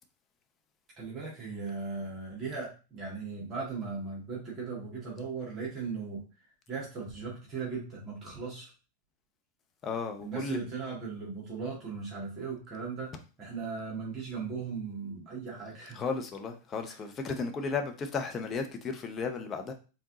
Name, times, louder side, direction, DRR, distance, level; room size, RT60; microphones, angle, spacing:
voice 1, 1.0-6.2 6.7-8.7 10.2-13.1 13.4-16.0, right 4 dB, 25° right, 1.9 m, -38 dB
voice 2, 9.8-10.6 15.9-19.7, left 4 dB, 25° left, 0.7 m, -34 dB
4.5 x 3.6 x 2.8 m
figure-of-eight pair, 90°, 0 cm